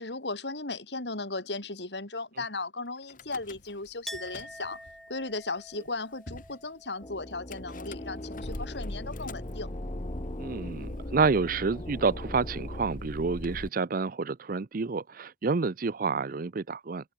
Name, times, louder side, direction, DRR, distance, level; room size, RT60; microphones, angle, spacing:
voice 1, 0.0-4.8 5.1-9.7, left 3 dB, 75° left, 4.3 m, -36 dB
Car / Engine starting / Idling, 3.1-3.9 4.1-4.9 5.6-5.7 5.9-6.0 6.3-6.5 7.5-13.7, left 1 dB, 50° left, 2.2 m, -40 dB
Chink clink, 4.1-9.6 9.9-10.7, equal, ahead, 3.3 m, -48 dB
sound 1, 7.0-12.8, left 1 dB, 30° left, 1.7 m, -42 dB
voice 2, 10.4-17.1, right 4 dB, 55° right, 0.6 m, -29 dB
head